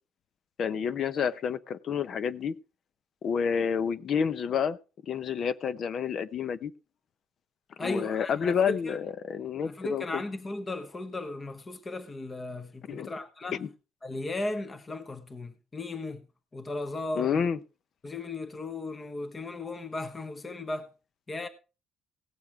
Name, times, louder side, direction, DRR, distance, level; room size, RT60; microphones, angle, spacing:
voice 1, 0.6-2.5 3.2-4.8 5.0-6.7 7.8-10.2 12.9-13.1 13.6-13.7 17.1-17.6, left 7 dB, 50° left, 0.7 m, -29 dB
voice 2, 7.8-9.0 9.6-13.6 14.0-16.2 16.5-17.5 18.0-20.9 21.3-21.5, left 2 dB, 25° left, 1.2 m, -36 dB
17.5 x 7.1 x 4.6 m
cardioid pair, 110°, 0 cm